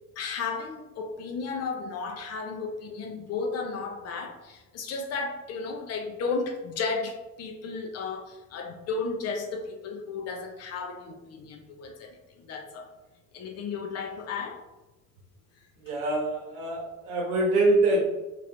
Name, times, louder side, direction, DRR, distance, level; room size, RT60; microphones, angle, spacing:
voice 1, 0.2-12.9 13.3-14.6, left 4 dB, 35° left, 2 dB, 0.6 m, -34 dB
voice 2, 15.8-18.0, right 2 dB, 65° right, -1 dB, 1.1 m, -24 dB
3.1 x 2.9 x 2.5 m, 1.1 s
hypercardioid pair, 70°, 47 cm